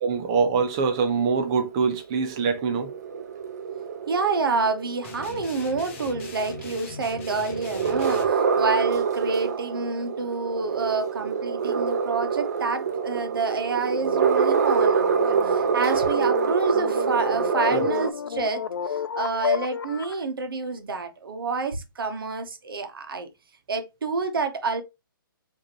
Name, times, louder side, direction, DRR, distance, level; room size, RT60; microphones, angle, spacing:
voice 1, 0.0-2.9 17.7-17.8, right 5 dB, 15° right, 0.3 m, -24 dB
sound 1, 0.7-18.1, right 6 dB, 45° right, 0.6 m, -26 dB
voice 2, 4.1-23.3 23.7-24.8, right 4 dB, 75° right, 1.1 m, -28 dB
sound 2, 5.0-8.3, left 5 dB, 35° left, 0.9 m, -41 dB
sound 3, 12.9-20.2, left 7 dB, 85° left, 0.5 m, -32 dB
5.0 x 2.9 x 2.9 m
hypercardioid pair, 170°, 12 cm